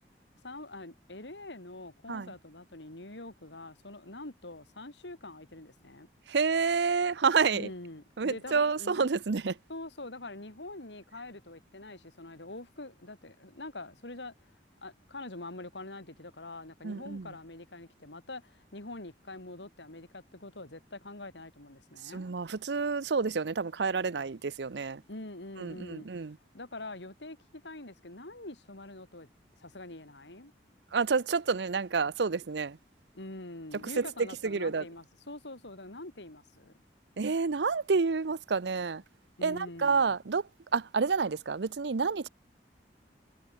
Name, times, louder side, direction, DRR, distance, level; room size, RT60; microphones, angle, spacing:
voice 1, 0.4-6.1 7.5-9.1 9.7-14.3 14.8-22.3 25.1-26.1 26.5-29.3 29.6-30.5 33.1-36.7 39.4-40.1, left 2 dB, 90° left, 3.8 m, -45 dB
voice 2, 6.3-7.7 8.2-9.6 16.8-17.3 22.1-25.0 25.6-26.4 30.9-32.8 34.0-34.1 34.4-34.8 37.2-39.0 39.4-40.4 40.7-42.3, right 5 dB, 80° right, 0.6 m, -29 dB
head